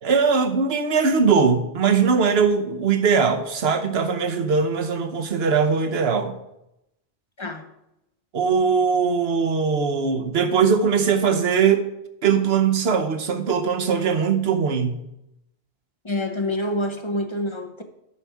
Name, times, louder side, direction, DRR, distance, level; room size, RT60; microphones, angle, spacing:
voice 1, 0.0-6.3 8.3-11.9 12.2-15.0, right 5 dB, 70° right, 1.1 m, -20 dB
voice 2, 16.0-17.8, left 1 dB, 30° left, 0.7 m, -27 dB
9.9 x 5.7 x 4.7 m
omnidirectional pair, 1.1 m